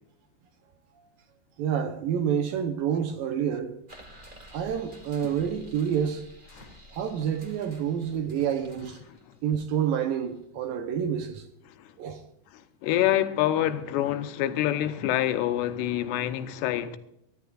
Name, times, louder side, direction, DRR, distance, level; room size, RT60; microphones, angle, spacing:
voice 1, 1.6-3.8 4.5-6.2 6.9-9.0 9.4-11.5 12.0-12.2, right 8 dB, 70° right, 2.3 m, -28 dB
sound 1, 3.9-10.4, right 1 dB, 45° right, 0.6 m, -51 dB
voice 2, 12.8-17.0, left 12 dB, 85° left, 3.0 m, -26 dB
23.5 x 14.0 x 2.5 m
omnidirectional pair, 4.8 m